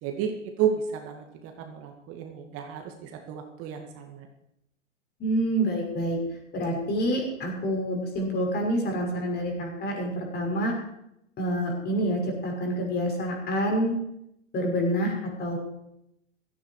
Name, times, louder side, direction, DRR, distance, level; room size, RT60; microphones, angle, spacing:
voice 1, 0.0-4.3, right 8 dB, 35° right, 4 dB, 2.2 m, -32 dB
voice 2, 5.2-6.2 6.5-10.7 11.4-13.9 14.5-15.6, equal, 25° left, 1 dB, 6.0 m, -27 dB
16.0 x 14.5 x 4.8 m, 0.79 s
hypercardioid pair, 105°, 37 cm